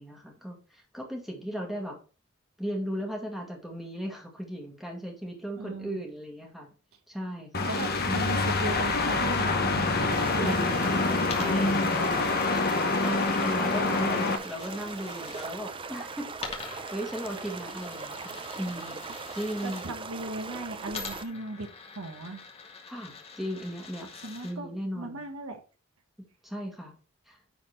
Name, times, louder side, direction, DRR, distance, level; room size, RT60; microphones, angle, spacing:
voice 1, 0.0-2.0 2.6-6.7 7.1-7.7 8.1-8.4 10.4-10.9 11.3-11.9 12.4-12.7 13.0-16.3 16.6-19.0 19.3-19.8 22.9-24.1 24.4-25.2 26.4-26.9 27.3-27.4, equal, ahead, 0 dB, 1.9 m, -36 dB
voice 2, 5.6-6.0 7.7-10.7 19.6-21.7 21.9-22.4 24.2-24.7 24.9-25.6, right 2 dB, 75° right, 5 dB, 1.5 m, -37 dB
sound 1, 7.5-14.4, left 3 dB, 45° left, 1.1 m, -26 dB
sound 2, 10.1-21.2, right 4 dB, 25° right, 0.5 m, -40 dB
Coin (dropping), 11.2-15.5 16.4-19.9 20.9-24.5, left 5 dB, 30° left, 1.4 m, -45 dB
9.6 x 4.3 x 4.5 m, 0.35 s
head